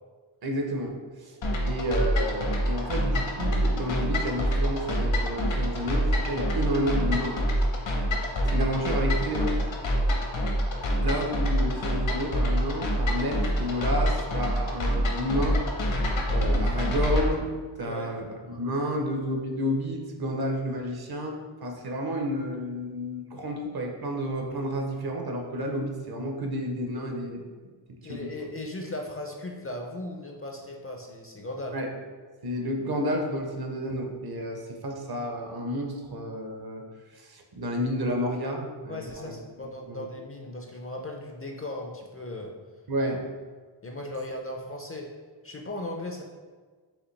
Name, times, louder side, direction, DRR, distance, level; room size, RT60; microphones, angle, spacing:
voice 1, 0.4-1.4 1.6-7.4 8.5-9.5 11.0-15.6 16.3-17.5 17.8-18.2 18.6-27.4 28.0-28.3 31.7-31.9 32.4-36.8 37.1-39.4 39.9-40.1 42.9-43.2, equal, 50° right, 2 dB, 0.7 m, -30 dB
sound 1, 1.4-17.3, equal, 65° left, 0.9 m, -26 dB
voice 2, 10.7-11.1 17.8-18.2 18.4-18.6 28.0-31.8 38.9-42.5 43.8-45.1 45.4-46.2, left 1 dB, 30° left, 1 dB, 0.4 m, -37 dB
5.0 x 3.0 x 3.2 m, 1.5 s
wide cardioid pair, 115°, 49 cm